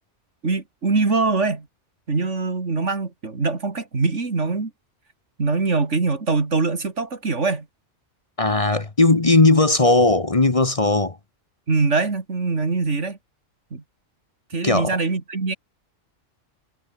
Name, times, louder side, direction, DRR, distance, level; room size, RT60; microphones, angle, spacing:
voice 1, 0.4-1.7 2.1-4.7 5.4-7.7 11.7-13.2 13.7-13.8 14.5-15.5, right 3 dB, 80° right, 3.0 m, -23 dB
voice 2, 8.4-11.2 14.6-14.9, left 2 dB, 30° left, 1.3 m, -17 dB
omnidirectional pair, 1.2 m